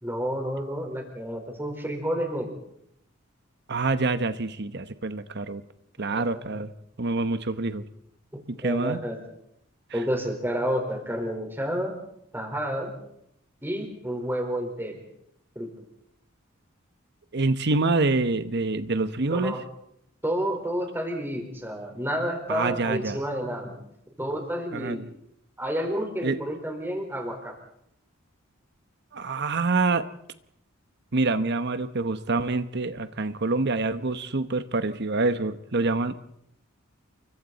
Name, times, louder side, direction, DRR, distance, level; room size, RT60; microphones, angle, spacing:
voice 1, 0.0-2.6 6.1-6.4 8.6-9.2 9.9-12.0 12.3-12.9 13.6-15.0 15.5-15.7 19.3-19.6 20.2-23.8 24.2-25.0 25.6-27.5, equal, 10° right, 2 dB, 4.4 m, -30 dB
voice 2, 3.7-5.6 6.0-6.7 7.0-7.8 8.5-9.0 9.9-10.0 17.3-19.5 22.5-23.2 24.7-25.1 26.2-26.4 29.1-30.1 31.1-36.1, right 3 dB, 55° right, 11 dB, 1.1 m, -26 dB
29.5 x 24.0 x 4.2 m, 0.75 s
head